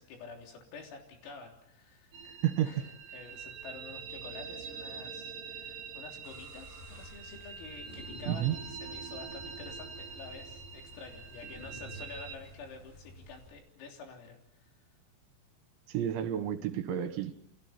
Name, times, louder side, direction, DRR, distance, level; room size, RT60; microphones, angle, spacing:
voice 1, 0.0-2.3 2.7-14.7, left 5 dB, 85° left, 2 dB, 6.1 m, -49 dB
sound 1, 2.1-12.4, right 6 dB, 50° right, 4.3 m, -45 dB
voice 2, 2.4-2.7 8.3-8.6 15.9-17.3, right 11 dB, 70° right, 9 dB, 3.6 m, -31 dB
sound 2, 6.2-13.5, equal, 50° left, 7.2 m, -51 dB
29.0 x 28.5 x 4.4 m, 0.76 s
omnidirectional pair, 5.8 m